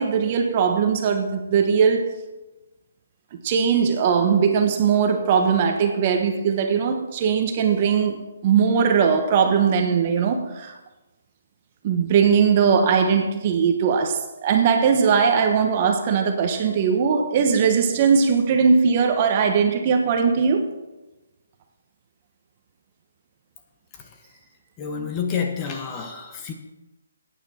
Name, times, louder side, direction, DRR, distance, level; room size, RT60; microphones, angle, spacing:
voice 1, 0.0-2.1 3.4-10.7 11.8-20.7, right 6 dB, 30° right, 1.1 m, -20 dB
voice 2, 23.9-24.3 24.8-26.5, left 6 dB, 20° left, 1.1 m, -29 dB
14.0 x 9.2 x 4.3 m
hypercardioid pair, 160°, 0 cm